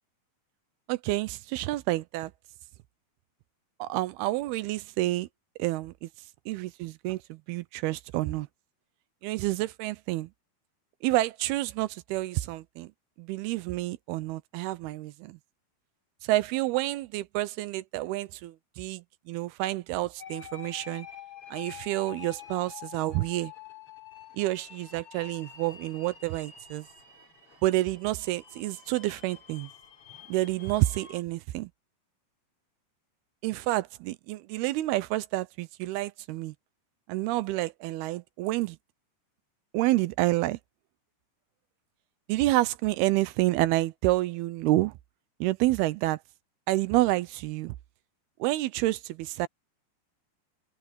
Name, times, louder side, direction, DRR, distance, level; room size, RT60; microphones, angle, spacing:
voice 1, 0.9-2.3 3.8-5.3 5.6-6.1 6.5-8.5 9.2-10.3 11.0-12.9 13.2-15.4 16.2-21.1 21.5-23.5 24.3-26.9 27.6-29.7 30.3-31.7 33.4-36.5 37.1-38.8 39.7-40.6 42.3-44.9 45.4-46.2 46.7-47.8 48.4-49.5, right 17 dB, 80° right, 2.6 m, -29 dB
sound 1, 20.2-31.2, left 9 dB, 35° left, 5.4 m, -47 dB
omnidirectional pair, 4.6 m